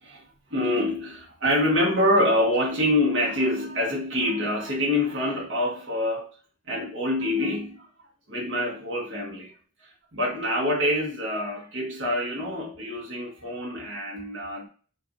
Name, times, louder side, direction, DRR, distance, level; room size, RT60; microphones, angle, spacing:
voice 1, 0.5-6.3 6.7-7.9 8.3-9.5 10.1-14.7, left 1 dB, 90° right, 1.4 m, -26 dB
6.0 x 2.6 x 2.6 m
head